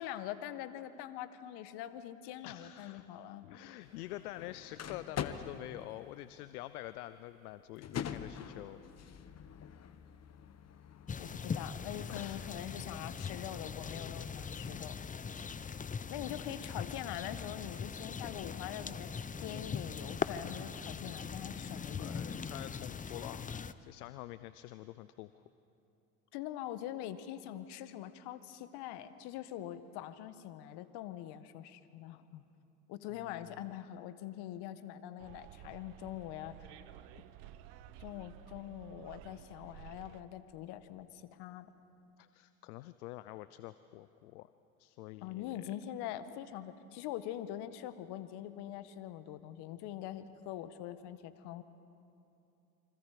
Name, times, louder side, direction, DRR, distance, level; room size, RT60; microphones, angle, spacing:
voice 1, 0.0-3.5 11.2-15.0 16.1-19.1 19.4-22.2 26.3-32.4 32.9-36.7 38.0-41.7 45.2-51.6, left 12 dB, 60° left, 12 dB, 1.5 m, -43 dB
voice 2, 2.4-3.1 3.4-8.8 12.1-12.5 16.2-16.5 22.0-25.4 33.1-33.6 42.2-44.5 44.8-45.7, left 16 dB, 80° left, 14 dB, 0.7 m, -47 dB
sound 1, 3.8-22.4, left 8 dB, 35° left, 1.3 m, -48 dB
sound 2, 11.1-23.7, left 5 dB, 20° left, 0.7 m, -41 dB
Bus, 35.2-40.2, right 12 dB, 65° right, 1.2 m, -53 dB
28.5 x 25.0 x 5.0 m, 2.8 s
hypercardioid pair, 75°, 44 cm